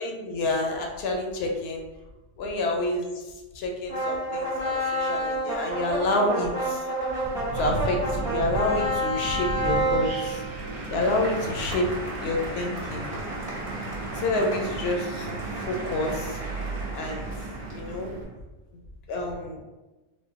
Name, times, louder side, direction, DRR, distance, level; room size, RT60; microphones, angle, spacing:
voice 1, 0.0-1.8 2.4-3.2 3.5-6.8 7.5-10.4 10.9-11.9 12.2-13.1 14.1-15.3 15.6-16.4 16.9-17.3 17.7-18.1 18.7-18.8 19.1-19.6, left 2 dB, 70° left, 1 dB, 0.8 m, -28 dB
sound 1, 3.9-18.1, right 1 dB, 30° right, 1.0 m, -31 dB
Wind, 7.2-18.2, right 3 dB, 70° right, 0.8 m, -35 dB
3.6 x 2.2 x 2.5 m, 1.1 s
omnidirectional pair, 1.2 m